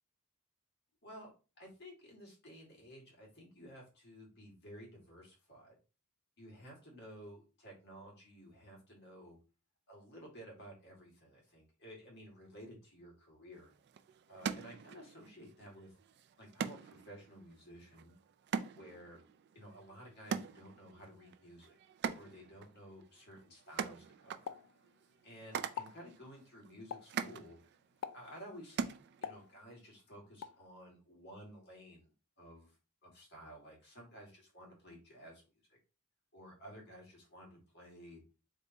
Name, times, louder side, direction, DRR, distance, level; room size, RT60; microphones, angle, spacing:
voice 1, 1.6-5.7 6.4-9.4 9.9-13.7 14.3-15.9 16.4-18.1 18.8-19.2 19.5-21.8 22.1-24.5 25.2-27.6 28.1-29.0 29.2-32.1 32.4-32.7 33.0-35.4 35.7-35.8 36.3-38.2, equal, 50° left, -1 dB, 1.7 m, -54 dB
sound 1, 13.5-29.6, right 6 dB, 50° right, 0.3 m, -44 dB
Explosion, 24.5-25.3 25.6-26.1 26.9-27.3 28.0-28.4 29.2-29.9 30.4-30.7, left 8 dB, 75° left, 0.3 m, -45 dB
3.5 x 2.5 x 4.0 m, 0.33 s
head